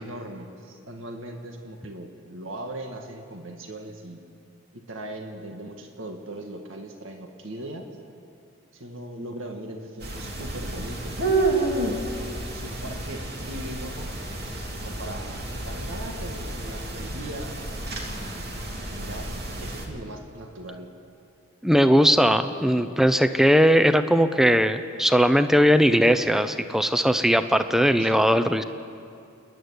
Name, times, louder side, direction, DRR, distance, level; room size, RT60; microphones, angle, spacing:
voice 1, 0.0-4.2 4.7-7.8 8.7-11.2 12.5-14.1 14.8-15.3 15.7-17.6 18.9-19.3 19.6-20.9 22.6-23.0 28.0-28.2, right 1 dB, 80° right, 3 dB, 2.0 m, -39 dB
sound 1, 10.0-19.9, right 2 dB, 55° right, 2.7 m, -30 dB
voice 2, 21.6-28.6, equal, ahead, 10 dB, 0.7 m, -19 dB
29.0 x 11.0 x 9.7 m, 2.5 s
head